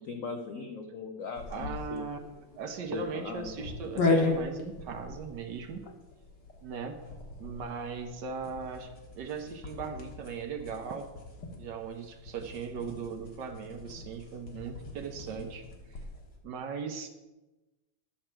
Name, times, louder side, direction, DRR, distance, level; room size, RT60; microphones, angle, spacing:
voice 1, 0.1-2.0 2.9-3.5 5.8-5.9, left 4 dB, 80° left, 5 dB, 0.7 m, -39 dB
sound 1, 1.3-16.3, left 3 dB, 60° left, 2.0 m, -37 dB
voice 2, 1.5-2.2 2.6-5.8 6.6-7.0 7.4-11.1 11.6-15.6 15.9-16.0 16.4-17.1, right 5 dB, 65° right, 6 dB, 1.3 m, -38 dB
11.0 x 6.4 x 4.5 m, 1.1 s
omnidirectional pair, 2.2 m